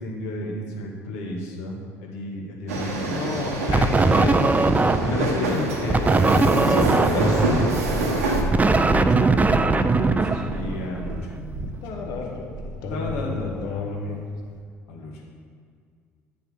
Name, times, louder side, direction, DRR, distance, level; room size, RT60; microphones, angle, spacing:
voice 1, 0.0-3.5 5.0-5.6 6.4-12.2 12.9-14.2 14.9-15.2, left 1 dB, 70° left, -2 dB, 2.0 m, -33 dB
sound 1, 2.7-8.4, right 2 dB, 80° right, 1.4 m, -27 dB
voice 2, 3.0-4.8 5.1-6.2 6.7-7.4 9.9-10.3 11.8-14.2, left 4 dB, 55° left, 1 dB, 1.6 m, -31 dB
sound 2, 3.7-5.3 5.9-11.0, right 3 dB, 20° right, 0.6 m, -20 dB
Purr, 7.4-13.7 14.4-14.5, right 2 dB, 60° right, 1.3 m, -32 dB
11.0 x 7.3 x 5.2 m, 2.1 s
figure-of-eight pair, 55°, 8 cm